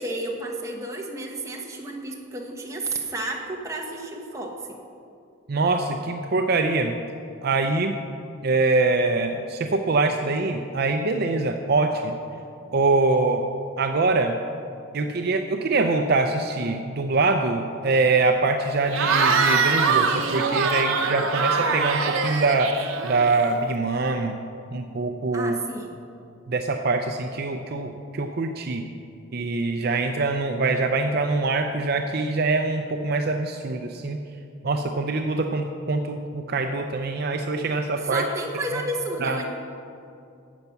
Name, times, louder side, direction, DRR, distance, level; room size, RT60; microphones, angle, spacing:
voice 1, 0.0-4.6 25.3-26.0 38.0-39.5, right 2 dB, 15° right, 0 dB, 1.2 m, -31 dB
voice 2, 5.5-7.0 7.4-8.0 8.4-12.1 12.7-13.4 13.8-14.3 14.9-22.7 23.0-24.4 24.7-25.6 26.5-28.8 29.3-34.2 34.6-38.2 38.7-38.8 39.2-39.4, right 3 dB, 50° right, 5 dB, 0.5 m, -24 dB
Cheering / Crowd, 18.9-23.5, right 4 dB, 75° right, 0.9 m, -23 dB
12.5 x 8.1 x 5.8 m, 2.5 s
head